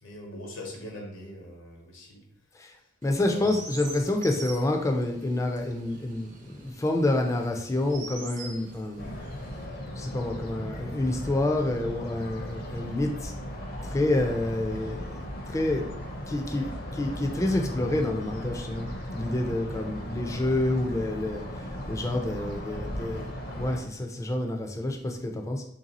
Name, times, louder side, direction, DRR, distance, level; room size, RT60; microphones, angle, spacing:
voice 1, 0.0-2.2 3.1-3.6, equal, 85° left, 0 dB, 1.1 m, -41 dB
voice 2, 3.0-9.2 10.0-13.3 13.8-15.0 15.5-15.9 16.3-21.4 21.9-25.6, left 1 dB, 15° left, 3 dB, 0.4 m, -28 dB
Chirp tweet, 3.0-9.7, right 3 dB, 40° right, 0.6 m, -45 dB
sound 1, 9.0-23.8, equal, 50° left, 0.7 m, -37 dB
3.2 x 2.7 x 4.0 m, 0.72 s
head